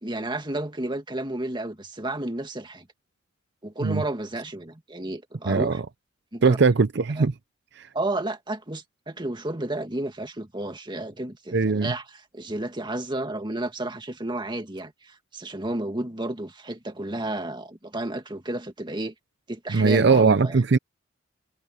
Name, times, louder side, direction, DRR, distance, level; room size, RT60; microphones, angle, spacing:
voice 1, 0.0-2.9 3.6-5.8 6.3-6.6 7.2-7.3 7.9-19.1 19.5-20.6, right 1 dB, 25° right, 2.0 m, -32 dB
voice 2, 5.5-5.8 6.4-7.3 7.8-7.9 11.5-11.9 19.7-20.8, right 4 dB, 60° right, 0.6 m, -20 dB
head